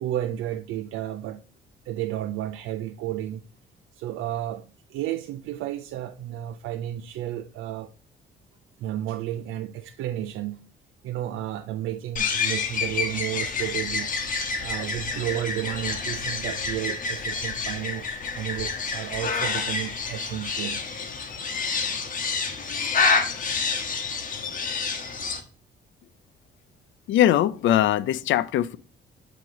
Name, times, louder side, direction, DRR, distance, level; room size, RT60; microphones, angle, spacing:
voice 1, 0.0-1.4 1.9-3.5 3.9-7.9 8.8-10.7 11.0-14.1 14.6-20.8 21.6-21.7, right 13 dB, 90° right, 0.5 m, -32 dB
sound 1, 12.2-25.4, left 4 dB, 45° left, 1.1 m, -28 dB
voice 2, 27.1-28.8, left 12 dB, 75° left, 0.5 m, -21 dB
7.7 x 3.0 x 4.8 m
cardioid pair, 90°, 20 cm